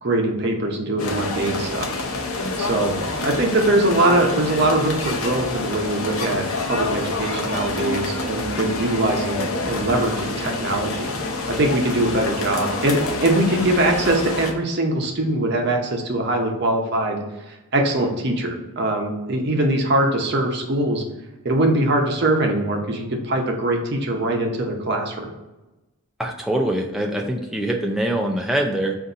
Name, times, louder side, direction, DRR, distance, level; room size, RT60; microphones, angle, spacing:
voice 1, 0.0-1.9 2.6-3.0 3.2-11.1 11.5-17.2 17.5-21.0 21.4-25.3, right 1 dB, 50° right, 1 dB, 0.7 m, -22 dB
sound 1, 1.0-14.5, left 2 dB, 70° left, 0.6 m, -27 dB
voice 2, 26.2-29.0, right 1 dB, ahead, 0 dB, 0.4 m, -23 dB
3.9 x 2.6 x 3.9 m, 1.1 s
head